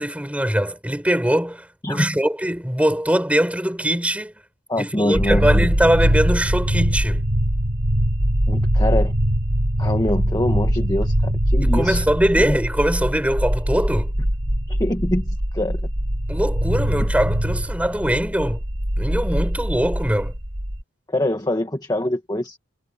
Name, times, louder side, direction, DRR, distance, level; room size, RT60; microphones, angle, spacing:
voice 1, 0.0-4.3 4.8-7.2 11.6-14.1 16.3-18.6 19.0-20.3, right 1 dB, 5° right, 5.9 m, -22 dB
voice 2, 1.8-2.2 4.7-5.7 8.5-9.1 9.8-12.0 12.4-12.6 14.7-15.8 21.1-22.6, left 1 dB, 20° left, 1.6 m, -24 dB
sound 1, 5.1-20.8, equal, 75° right, 5.5 m, -22 dB
head